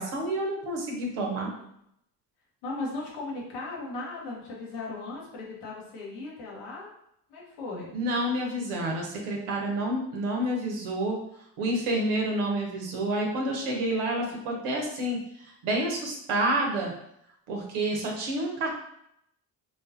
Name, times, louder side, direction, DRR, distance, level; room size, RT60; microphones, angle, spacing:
voice 1, 0.0-1.5 7.9-11.2 11.6-16.9 17.5-18.7, right 1 dB, 80° right, 0 dB, 0.9 m, -29 dB
voice 2, 2.6-6.9 7.3-8.0, left 3 dB, 90° left, -3 dB, 1.1 m, -37 dB
3.7 x 2.5 x 2.6 m, 0.75 s
supercardioid pair, 55°, 49 cm